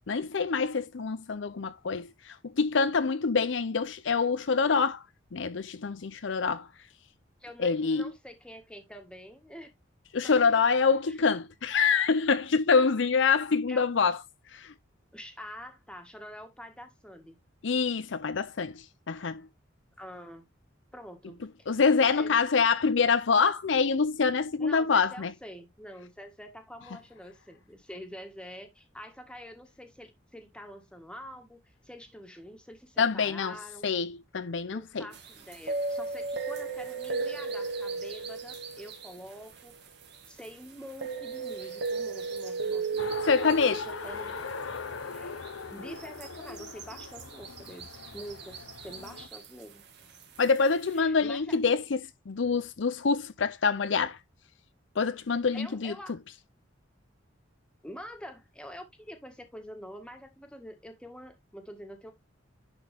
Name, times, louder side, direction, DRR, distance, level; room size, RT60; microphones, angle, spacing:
voice 1, 0.1-5.0 5.3-6.7 7.6-8.0 10.1-14.2 14.5-14.7 17.6-19.4 21.7-25.3 33.0-33.6 33.8-35.0 43.3-43.8 50.4-52.0 52.3-54.2 55.0-55.9, left 5 dB, 65° left, 0.6 m, -26 dB
voice 2, 7.4-9.7 10.2-10.3 11.1-11.2 13.7-13.9 15.1-17.4 20.0-20.5 20.9-21.7 22.1-22.4 24.6-33.9 34.7-39.8 40.3-44.4 45.0-45.4 45.7-49.8 50.9-51.6 55.5-56.2 57.8-62.1, equal, 5° left, 1.8 m, -46 dB
sound 1, 35.1-40.5 40.9-45.2 45.4-45.5 46.0-49.6 50.1-50.6, right 4 dB, 55° right, 2.1 m, -36 dB
Race car auto racing, 43.0-49.3, left 4 dB, 85° left, 0.9 m, -40 dB
10.5 x 4.4 x 3.5 m
head